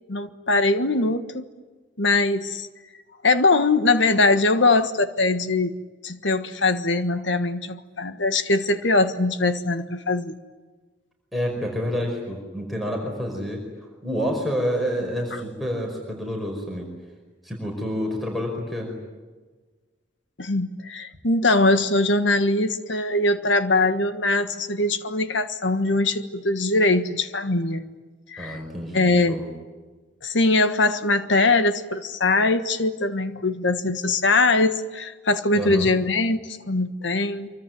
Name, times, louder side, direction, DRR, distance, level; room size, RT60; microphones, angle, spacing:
voice 1, 0.1-1.4 2.0-2.7 3.2-5.8 6.0-10.4 15.3-15.4 20.4-27.8 28.3-28.6 28.9-29.4 30.2-37.5, left 2 dB, 80° left, 9 dB, 1.5 m, -22 dB
voice 2, 11.3-13.6 14.0-16.9 17.4-18.9 28.4-29.5 35.6-35.9, equal, ahead, 1 dB, 5.2 m, -28 dB
26.0 x 24.5 x 9.4 m, 1.3 s
head